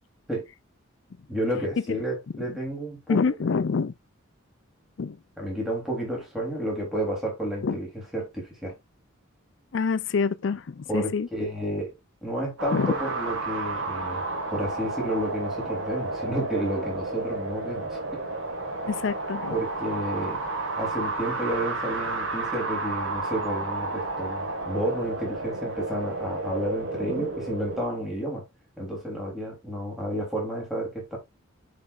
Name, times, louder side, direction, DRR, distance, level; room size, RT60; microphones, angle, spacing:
voice 1, 1.3-3.2 5.4-7.9 8.1-8.7 10.9-11.9 12.2-14.2 14.5-18.2 19.5-20.5 20.8-28.4 28.8-31.2, right 1 dB, ahead, 3.5 m, -31 dB
voice 2, 3.1-3.9 5.0-5.2 7.6-7.8 9.7-11.3 12.7-12.9 18.9-19.5 27.1-27.3, left 5 dB, 60° left, 0.4 m, -26 dB
sound 1, 12.6-27.9, right 2 dB, 70° right, 2.0 m, -32 dB
10.5 x 5.1 x 2.5 m
head